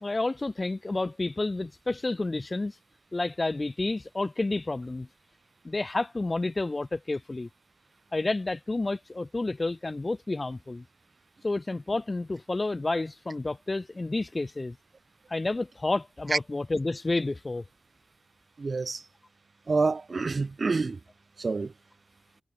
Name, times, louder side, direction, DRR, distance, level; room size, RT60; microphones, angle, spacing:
voice 1, 0.0-2.7 3.1-5.1 5.6-7.5 8.1-10.8 11.4-14.8 15.3-17.6, left 2 dB, 30° left, 1.3 m, -30 dB
voice 2, 18.6-19.0 19.7-21.0 21.4-21.7, right 4 dB, 50° right, 0.7 m, -27 dB
wide cardioid pair, 80°, 0 cm